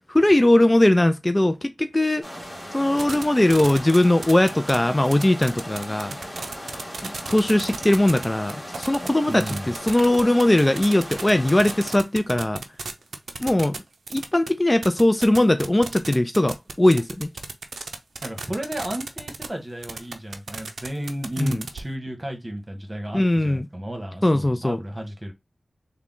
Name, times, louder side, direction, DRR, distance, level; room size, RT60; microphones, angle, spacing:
voice 1, 0.1-2.2 2.7-6.2 7.0-12.6 13.4-13.8 14.1-17.3 21.4-21.6 23.1-23.7 24.2-24.8, left 1 dB, 25° left, 0.3 m, -20 dB
sound 1, 2.2-12.0, equal, 5° left, 1.7 m, -38 dB
sound 2, 3.0-3.2 3.5-4.8 5.0-14.5 14.8-19.5 19.8-21.8, right 4 dB, 90° right, 0.4 m, -33 dB
voice 2, 9.3-9.7 18.2-25.3, right 1 dB, 30° right, 1.2 m, -33 dB
3.5 x 2.2 x 3.6 m
cardioid pair, 45°, 0 cm